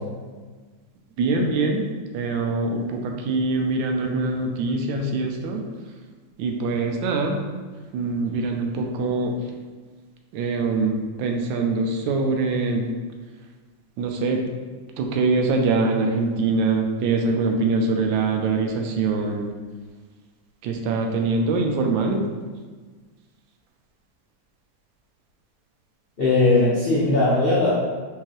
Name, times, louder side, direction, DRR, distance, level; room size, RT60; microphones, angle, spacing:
voice 1, 1.2-5.6 6.4-7.4 7.9-9.4 10.3-12.9 14.0-14.4 15.0-19.5 20.6-22.2, right 3 dB, 75° right, 2 dB, 1.3 m, -23 dB
voice 2, 26.2-27.7, left 2 dB, 65° left, -9 dB, 0.5 m, -19 dB
4.6 x 3.5 x 3.0 m, 1.4 s
omnidirectional pair, 2.4 m